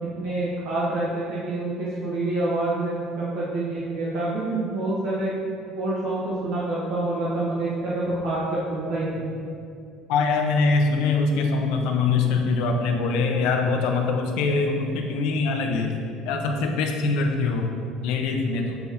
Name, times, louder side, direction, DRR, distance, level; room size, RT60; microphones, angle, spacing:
voice 1, 0.0-5.3 5.8-9.2, right 2 dB, 60° right, -7 dB, 1.0 m, -27 dB
voice 2, 10.1-16.0 16.3-17.7 18.0-18.8, left 4 dB, 65° left, 4 dB, 0.6 m, -23 dB
6.9 x 3.5 x 4.2 m, 2.4 s
cardioid pair, 180°, 0 cm